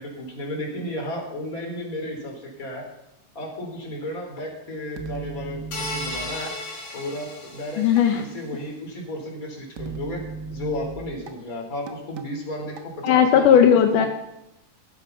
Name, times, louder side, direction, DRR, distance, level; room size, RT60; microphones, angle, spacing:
voice 1, 0.0-2.8 3.3-6.5 6.9-7.9 8.1-10.2 10.5-13.6 13.9-14.1, left 1 dB, 25° left, 0 dB, 4.0 m, -33 dB
sound 1, 5.0-6.5 8.0-8.1 9.8-11.3 11.9-12.3 12.8-13.2, right 5 dB, 70° right, 1.0 m, -36 dB
sound 2, 5.7-8.2, left 1 dB, 45° left, 4.3 m, -34 dB
voice 2, 7.8-8.2 13.0-14.1, left 8 dB, 80° left, 5 dB, 2.5 m, -16 dB
15.5 x 11.5 x 5.7 m, 0.86 s
omnidirectional pair, 3.8 m